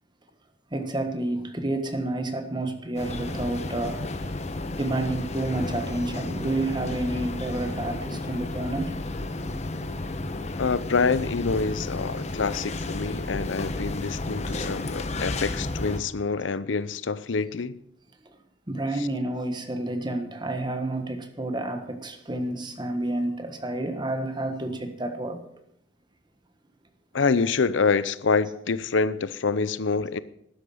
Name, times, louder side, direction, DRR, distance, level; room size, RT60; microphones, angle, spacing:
voice 1, 0.7-4.1 4.8-9.0 9.4-9.5 18.2-18.4 18.7-25.4, right 2 dB, 25° right, 1.4 m, -30 dB
sound 1, 2.9-16.0, left 2 dB, 35° left, 1.1 m, -32 dB
voice 2, 10.6-17.8 27.1-30.2, left 4 dB, 85° left, 0.7 m, -26 dB
12.5 x 10.0 x 7.1 m
head